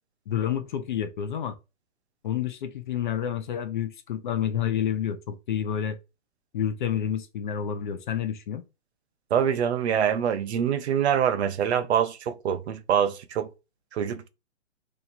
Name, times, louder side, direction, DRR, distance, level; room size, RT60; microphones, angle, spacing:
voice 1, 0.3-1.5 2.2-6.0 6.5-8.6, left 9 dB, 40° left, 0.6 m, -29 dB
voice 2, 9.3-13.5 13.9-14.3, right 8 dB, 60° right, 0.6 m, -25 dB
2.9 x 2.6 x 4.2 m
hypercardioid pair, 160°, 37 cm